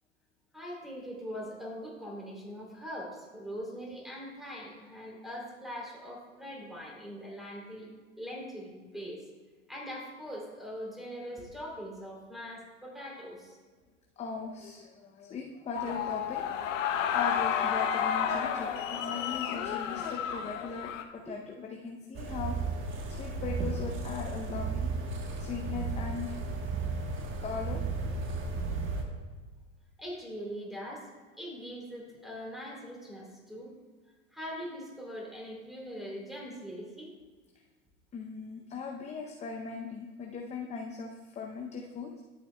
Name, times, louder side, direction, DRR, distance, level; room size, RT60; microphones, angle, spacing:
voice 1, 0.5-7.9 8.2-9.3 9.7-13.6 21.3-21.4 30.0-31.1 31.4-33.7 34.3-37.1, equal, ahead, -3 dB, 2.8 m, -42 dB
voice 2, 14.2-22.5 23.1-24.9 25.4-26.4 27.4-27.8 38.1-42.2, left 5 dB, 20° left, 1 dB, 0.6 m, -39 dB
sound 1, 15.7-21.0, left 8 dB, 70° left, 0.9 m, -31 dB
sound 2, 22.1-29.0, right 3 dB, 30° right, 1.3 m, -34 dB
13.0 x 7.6 x 2.2 m, 1.4 s
hypercardioid pair, 100°, 39 cm